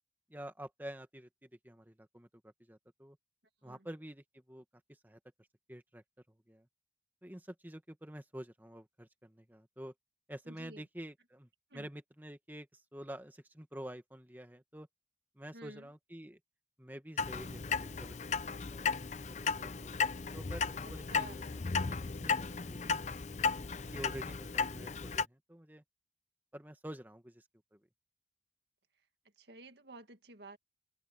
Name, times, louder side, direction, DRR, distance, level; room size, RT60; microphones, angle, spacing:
voice 1, 0.3-3.2 3.6-5.2 5.7-6.7 7.2-9.9 10.3-14.9 15.3-16.4 16.8-18.2 18.7-23.2 23.9-25.8 26.5-27.4 27.7-27.8, equal, 10° right, 1.7 m, -49 dB
voice 2, 10.5-10.8 11.7-11.9 15.5-15.9 20.8-21.6 29.4-30.6, right 1 dB, 75° right, 2.0 m, -51 dB
Clock, 17.2-25.2, left 5 dB, 40° left, 0.6 m, -35 dB
open air
head